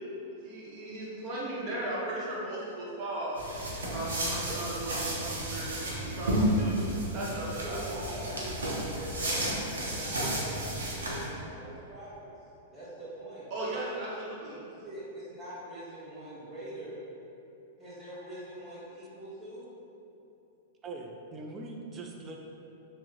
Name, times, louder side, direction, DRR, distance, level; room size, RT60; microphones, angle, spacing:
voice 1, 0.4-3.4 3.8-6.3 6.5-7.8 8.3-8.7 13.5-14.6, right 1 dB, 45° right, -6 dB, 0.9 m, -37 dB
sound 1, 3.4-11.3, right 1 dB, 85° right, 0.7 m, -32 dB
voice 2, 7.6-12.3 12.7-13.5 14.6-17.0 17.8-19.6, right 1 dB, ahead, -17 dB, 1.1 m, -43 dB
voice 3, 20.8-22.4, right 2 dB, 25° right, 1 dB, 0.4 m, -41 dB
3.0 x 2.1 x 3.6 m, 2.9 s
hypercardioid pair, 105°, 0 cm